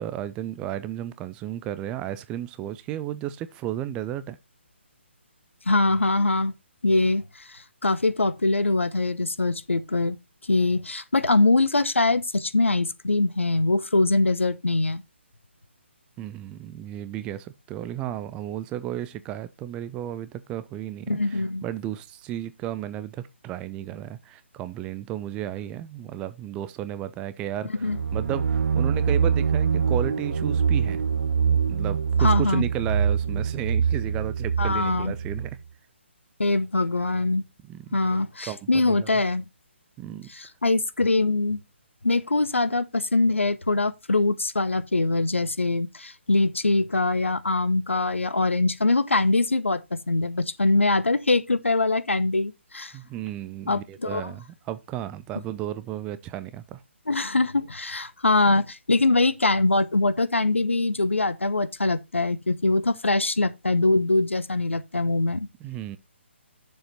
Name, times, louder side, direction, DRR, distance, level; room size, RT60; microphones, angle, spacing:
voice 1, 0.0-4.4 16.2-31.0 31.5-35.6 37.7-37.9 38.5-39.1 40.0-40.3 52.9-56.8 65.6-66.0, right 12 dB, 15° right, 0.5 m, -33 dB
voice 2, 5.7-6.5 6.8-10.2 10.5-15.0 21.1-21.6 27.8-28.0 32.2-32.6 34.6-35.1 36.4-37.4 37.9-39.5 40.3-41.6 42.0-52.9 53.7-54.3 57.1-65.5, left 2 dB, 75° left, 1.0 m, -23 dB
sound 1, 27.8-35.5, right 6 dB, 55° right, 1.0 m, -24 dB
7.6 x 7.1 x 4.3 m
figure-of-eight pair, 140°, 7 cm